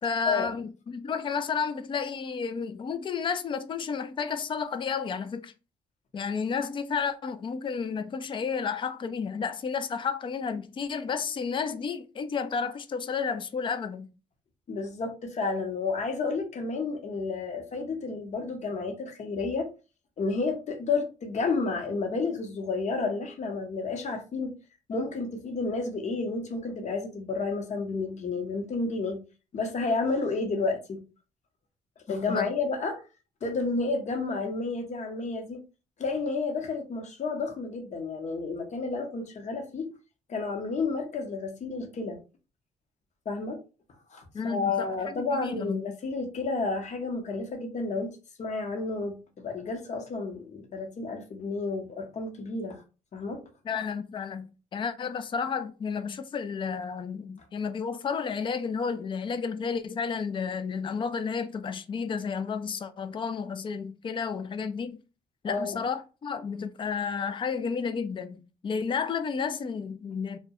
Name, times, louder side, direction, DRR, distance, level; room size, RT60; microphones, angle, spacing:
voice 1, 0.0-5.5 6.1-14.1 32.1-32.5 44.3-46.0 53.6-65.0 65.4-70.4, left 6 dB, 35° left, 0.4 m, -32 dB
voice 2, 14.7-19.7 20.2-24.5 24.9-29.2 29.5-31.0 32.1-33.0 33.4-35.6 36.0-39.9 40.3-42.2 43.3-43.6 44.1-52.8 53.1-53.4 65.5-65.8, left 3 dB, 50° left, 0.8 m, -31 dB
2.2 x 2.2 x 2.7 m
supercardioid pair, 70°, 15 cm